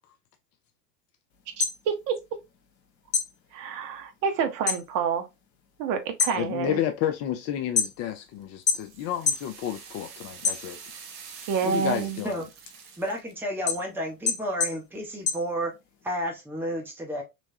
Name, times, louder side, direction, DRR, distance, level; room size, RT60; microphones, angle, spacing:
sound 1, 1.4-2.8 3.1-4.9 5.2-5.7 6.0-8.2 8.7-9.5 9.9-11.1 11.5-16.1, left 6 dB, 85° left, 0.9 m, -29 dB
voice 1, 1.6-2.2 3.5-5.3 5.8-6.8 11.5-12.2, right 6 dB, 40° right, 0.9 m, -28 dB
voice 2, 6.4-10.8 11.6-12.4, left 11 dB, 35° left, 0.5 m, -31 dB
sound 2, 8.2-13.3, right 6 dB, 70° right, 1.1 m, -45 dB
voice 3, 13.0-15.7 16.0-17.2, equal, 5° right, 1.2 m, -31 dB
3.4 x 3.1 x 2.7 m
hypercardioid pair, 85°, 49 cm